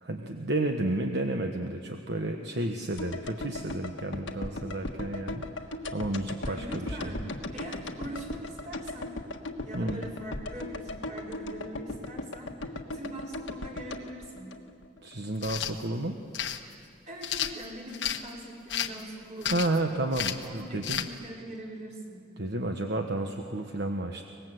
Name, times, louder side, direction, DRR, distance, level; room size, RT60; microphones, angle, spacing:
voice 1, 0.0-7.2 9.7-10.0 15.0-16.2 19.4-21.1 22.4-24.3, right 2 dB, 65° right, 4 dB, 1.2 m, -31 dB
sound 1, 3.0-15.2 15.4-15.5, left 2 dB, 85° left, 1.5 m, -38 dB
voice 2, 6.4-9.1 9.6-14.5 17.1-19.6 20.4-22.2, right 1 dB, 40° right, -3 dB, 4.7 m, -42 dB
sound 2, 15.4-15.7 16.3-16.6 17.2-18.2 18.7-19.0 19.4-19.8 20.1-20.5 20.8-21.1, left 10 dB, 65° left, 1.2 m, -31 dB
24.5 x 20.5 x 8.0 m, 2.4 s
head